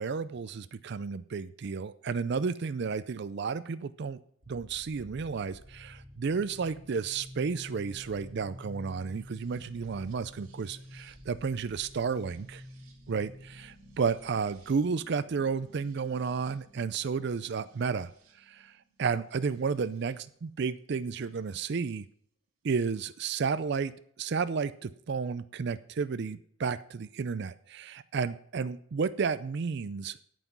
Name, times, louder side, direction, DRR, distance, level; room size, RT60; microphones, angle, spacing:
voice 1, 0.0-4.2 4.5-12.6 13.1-18.1 18.4-22.1 22.6-23.9 24.2-30.2, right 5 dB, 55° right, 14 dB, 0.4 m, -32 dB
sound 1, 4.4-20.1 21.3-21.9, equal, 75° right, 2.5 m, -51 dB
9.0 x 8.1 x 6.0 m, 0.65 s
head